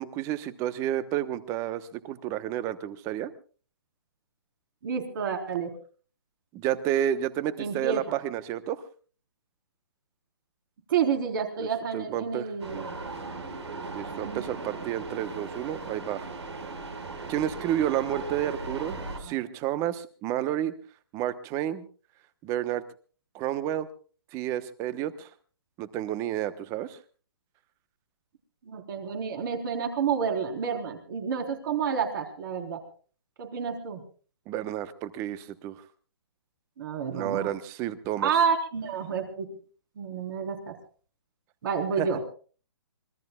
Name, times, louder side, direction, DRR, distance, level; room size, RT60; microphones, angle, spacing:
voice 1, 0.0-3.3 6.5-8.8 11.6-11.7 11.9-12.5 13.9-16.3 17.3-20.7 21.1-21.8 22.4-22.8 23.3-23.9 24.3-25.3 25.8-27.0 34.5-35.8 37.1-38.3 42.0-42.1, right 11 dB, 20° right, 14 dB, 1.0 m, -30 dB
voice 2, 4.8-5.7 7.6-8.0 10.9-13.0 19.2-19.4 28.6-32.8 33.4-34.0 36.8-37.5 38.2-39.5 40.0-40.7 41.6-42.3, right 6 dB, 50° right, 4 dB, 4.1 m, -29 dB
sound 1, 12.6-19.2, right 3 dB, 85° right, 5.2 m, -38 dB
25.5 x 21.5 x 2.4 m, 0.39 s
hypercardioid pair, 150°, 14 cm